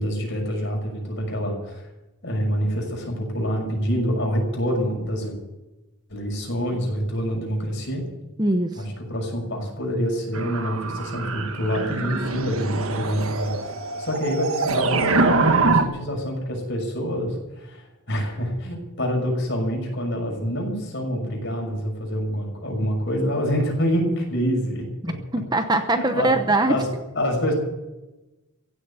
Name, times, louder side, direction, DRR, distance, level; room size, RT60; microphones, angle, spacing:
voice 1, 0.0-1.9 2.2-5.4 6.1-8.1 8.8-13.7 14.0-24.8 25.9-26.3 26.7-26.9 27.1-27.5, equal, 50° left, 1 dB, 6.3 m, -26 dB
voice 2, 8.4-8.9 25.0-26.8, right 2 dB, 20° right, 7 dB, 0.9 m, -22 dB
sound 1, 10.3-15.8, right 3 dB, 70° right, 1.5 m, -24 dB
16.0 x 8.6 x 10.0 m, 1.0 s
head